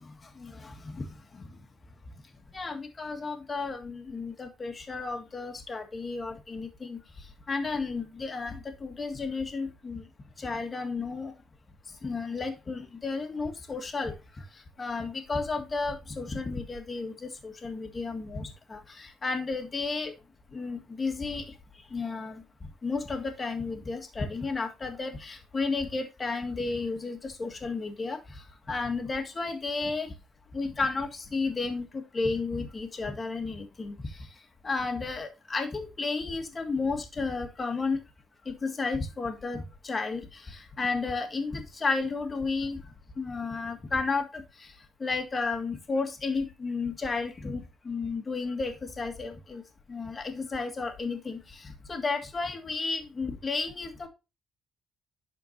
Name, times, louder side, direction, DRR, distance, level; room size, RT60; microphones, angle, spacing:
voice 1, 0.0-1.7 2.5-10.1 10.4-11.3 11.9-20.1 20.5-30.1 30.5-38.0 38.5-49.6 49.9-54.1, left 4 dB, 30° left, 5 dB, 1.8 m, -33 dB
11.5 x 4.6 x 2.8 m, 0.26 s
cardioid pair, 90°, 0 cm